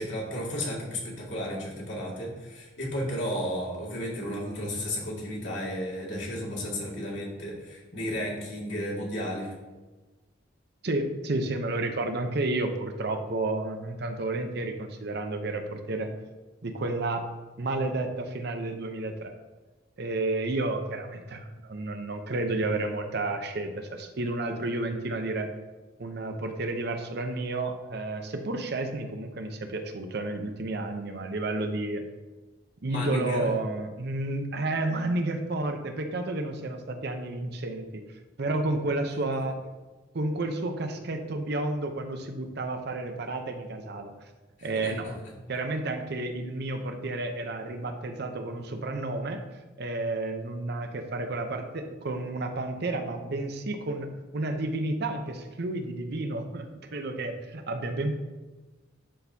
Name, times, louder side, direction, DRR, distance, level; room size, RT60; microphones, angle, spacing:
voice 1, 0.0-9.5 32.9-33.5 44.6-44.9, equal, 70° left, -5 dB, 2.2 m, -33 dB
voice 2, 10.8-16.1 16.6-17.3 17.6-19.3 20.0-25.5 26.0-32.0 32.8-38.0 38.4-39.6 40.1-44.1 44.6-45.2 45.5-49.4 49.8-54.1 54.3-58.2, right 2 dB, 60° right, 6 dB, 0.7 m, -31 dB
11.5 x 4.4 x 2.7 m, 1.2 s
head